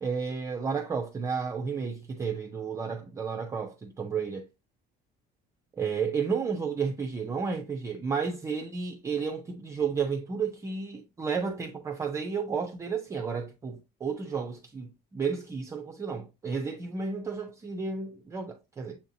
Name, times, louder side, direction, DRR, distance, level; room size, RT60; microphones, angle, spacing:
voice 1, 0.0-4.5 5.8-19.0, right 5 dB, 15° right, 0.3 m, -32 dB
6.9 x 2.7 x 2.6 m
cardioid pair, 180°, 19 cm